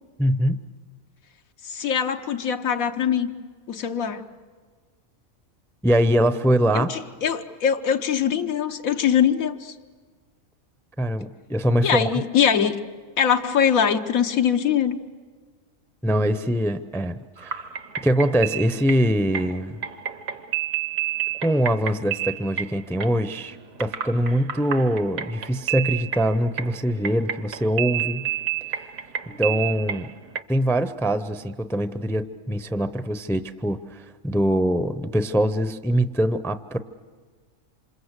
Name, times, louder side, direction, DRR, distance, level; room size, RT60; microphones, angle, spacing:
voice 1, 0.2-0.6 5.8-6.9 11.0-12.2 16.0-17.1 17.4-17.7 18.0-19.8 21.4-28.3 28.7-28.8 29.3-30.1 30.5-36.8, right 1 dB, 5° left, 12 dB, 0.4 m, -23 dB
voice 2, 1.6-3.3 3.7-4.2 6.7-9.7 11.8-12.8 13.2-15.0, left 8 dB, 90° left, 6 dB, 1.4 m, -22 dB
sound 1, 17.4-30.4, right 11 dB, 80° right, 1.4 m, -31 dB
27.5 x 26.5 x 8.2 m, 1.5 s
omnidirectional pair, 1.4 m